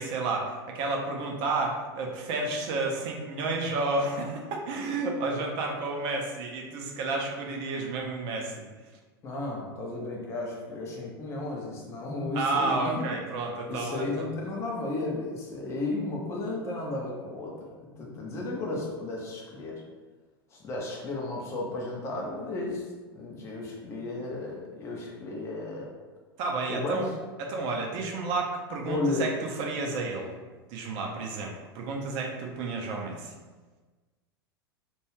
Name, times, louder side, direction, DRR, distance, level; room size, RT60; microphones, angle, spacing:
voice 1, 0.0-8.7 12.3-14.3 26.4-27.1 27.4-30.3 30.7-33.3, right 3 dB, 40° right, 0 dB, 0.5 m, -31 dB
voice 2, 9.2-13.1 13.7-17.5 18.0-19.8 20.5-22.9 23.1-25.9 26.7-27.1 28.8-29.3, left 2 dB, 20° left, -2 dB, 0.5 m, -33 dB
2.3 x 2.2 x 3.1 m, 1.3 s
figure-of-eight pair, 90°, 13 cm